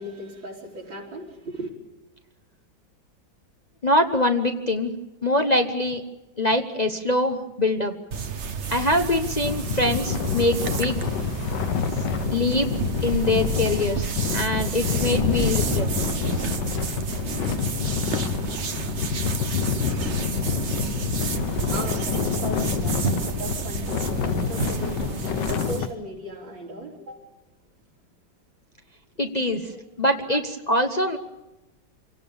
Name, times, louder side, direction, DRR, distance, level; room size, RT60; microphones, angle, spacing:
voice 1, 0.0-1.7 21.5-25.1 25.4-27.3 29.6-29.8, equal, 90° right, -1 dB, 4.6 m, -37 dB
voice 2, 3.8-4.9 5.2-6.0 6.4-7.9 8.7-11.0 12.3-12.7 13.0-15.9 29.2-29.7 30.0-31.2, left 1 dB, 30° left, 4 dB, 0.9 m, -23 dB
sound 1, 8.1-25.9, right 5 dB, 45° right, 1.2 m, -30 dB
Night Snore. O Ressonar da Noite, 9.4-25.9, left 8 dB, 70° left, 1.5 m, -28 dB
27.0 x 17.5 x 7.1 m, 1.1 s
omnidirectional pair, 2.0 m